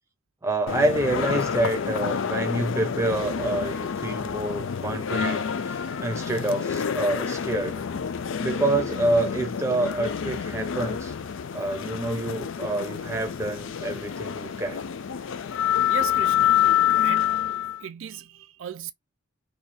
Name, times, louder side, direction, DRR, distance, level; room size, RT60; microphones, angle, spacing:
voice 1, 0.4-7.8 8.4-11.1 11.5-14.8, right 2 dB, 15° right, 0.7 m, -27 dB
sound 1, 0.7-17.8, left 9 dB, 65° left, 0.4 m, -27 dB
voice 2, 15.6-17.5 17.8-18.9, right 9 dB, 70° right, 0.4 m, -38 dB
2.7 x 2.4 x 4.1 m
head